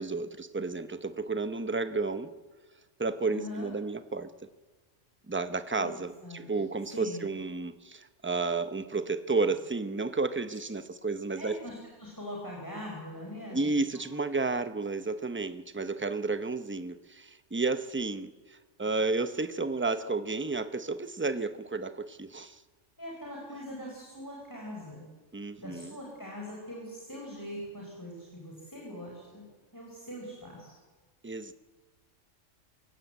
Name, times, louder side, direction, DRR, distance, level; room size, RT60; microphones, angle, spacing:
voice 1, 0.0-2.3 3.0-4.5 5.3-11.6 13.5-22.6 25.3-26.0 31.2-31.5, right 3 dB, 10° right, 10 dB, 0.6 m, -32 dB
voice 2, 3.3-3.7 5.8-6.5 6.9-7.2 11.3-13.8 23.0-25.0 25.6-29.4 29.7-30.7, equal, 15° left, -2 dB, 4.9 m, -42 dB
25.0 x 16.5 x 8.1 m, 1.3 s
omnidirectional pair, 1.3 m